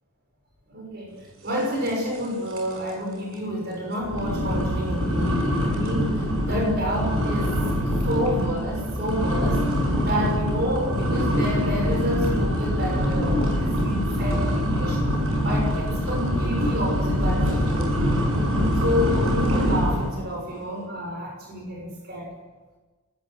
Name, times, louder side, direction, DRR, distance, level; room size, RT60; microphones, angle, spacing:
voice 1, 0.7-1.2 1.4-9.7 10.0-15.0 15.4-18.3 18.8-22.3, equal, 50° right, 0 dB, 6.2 m, -29 dB
sound 1, 1.9-2.3 2.5-2.9 3.3-3.4 4.0-20.2, equal, 70° right, 7.5 m, -24 dB
29.0 x 19.5 x 8.1 m, 1.3 s
head